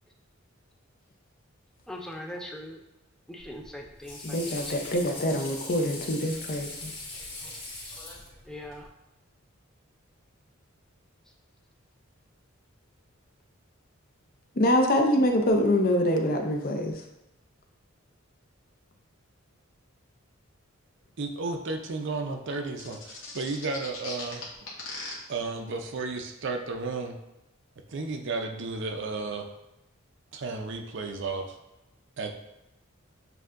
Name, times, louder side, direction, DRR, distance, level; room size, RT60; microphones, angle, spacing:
voice 1, 1.9-2.8 3.3-4.4 8.5-8.9, left 1 dB, 5° left, 1 dB, 0.4 m, -40 dB
Water / Sink (filling or washing), 3.4-8.9, left 2 dB, 25° left, 1.6 m, -41 dB
voice 2, 4.2-6.9 14.6-16.9, left 1 dB, 45° left, 3 dB, 0.6 m, -25 dB
voice 3, 21.2-24.4 25.3-27.2 27.9-29.5 30.3-31.6 32.2-32.3, right 3 dB, 60° right, 5 dB, 0.5 m, -33 dB
sound 1, 22.8-25.1, left 3 dB, 65° left, 1.1 m, -38 dB
7.7 x 2.7 x 2.5 m, 0.94 s
head